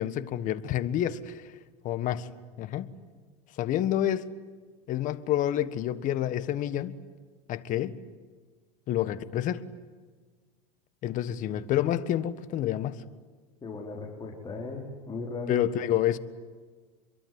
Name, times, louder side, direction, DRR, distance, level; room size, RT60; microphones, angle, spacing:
voice 1, 0.0-1.5 1.8-2.3 2.6-2.9 3.6-4.3 4.9-7.0 7.5-8.0 8.9-9.6 11.0-13.0 15.5-16.2, left 11 dB, 45° left, 1.5 m, -28 dB
voice 2, 13.6-15.6, left 3 dB, 25° left, 4.6 m, -37 dB
26.0 x 23.0 x 9.7 m
supercardioid pair, 105°, 18 cm